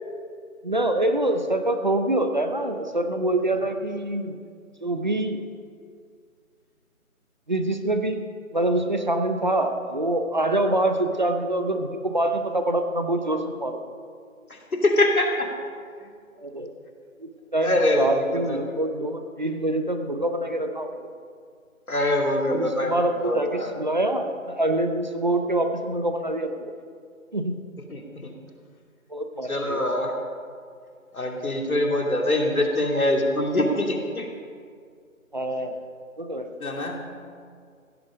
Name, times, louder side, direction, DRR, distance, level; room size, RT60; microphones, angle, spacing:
voice 1, 0.6-4.4 4.8-5.4 7.5-8.2 8.5-13.8 16.4-16.7 17.2-20.9 22.5-26.7 27.3-27.6 29.1-29.8 35.3-35.8 36.2-36.5, right 1 dB, 35° right, 6 dB, 0.8 m, -25 dB
voice 2, 14.5-15.5 17.6-18.6 21.9-23.7 27.9-28.3 29.5-30.1 31.1-34.3 36.6-37.1, left 1 dB, 90° left, 1 dB, 2.9 m, -24 dB
16.0 x 13.0 x 5.2 m, 2.2 s
figure-of-eight pair, 170°, 42 cm